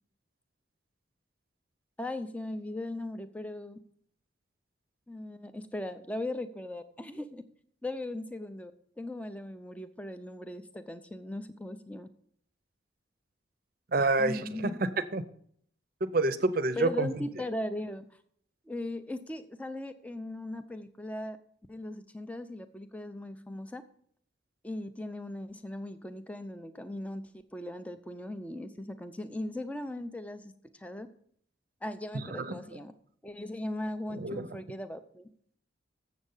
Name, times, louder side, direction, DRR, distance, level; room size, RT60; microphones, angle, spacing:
voice 1, 2.0-3.8 5.1-7.4 7.8-8.7 9.0-12.1 14.2-14.8 16.8-18.0 18.7-21.4 21.7-23.8 24.6-27.2 27.5-31.1 31.8-32.9 33.2-35.3, left 1 dB, 5° left, 10 dB, 0.5 m, -38 dB
voice 2, 13.9-15.2 16.0-17.1 32.1-32.6 34.1-34.5, right 2 dB, 45° right, 12 dB, 0.6 m, -28 dB
7.7 x 7.2 x 5.5 m, 0.62 s
head